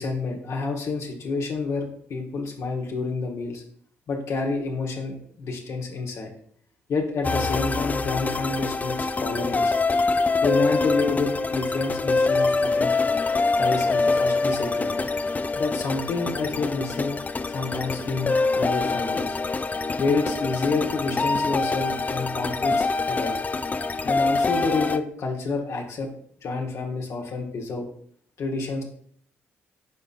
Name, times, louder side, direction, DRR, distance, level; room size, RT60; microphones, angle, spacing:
voice 1, 0.0-3.6 4.1-6.3 6.9-9.7 10.4-12.9 13.6-15.1 15.6-17.2 17.5-19.4 20.0-23.4 24.0-26.1 26.4-27.9 28.4-28.8, left 3 dB, 60° left, 1 dB, 1.2 m, -28 dB
sound 1, 7.2-25.0, left 3 dB, 30° left, 0.4 m, -25 dB
11.0 x 3.9 x 2.5 m, 0.62 s
hypercardioid pair, 50°, 5 cm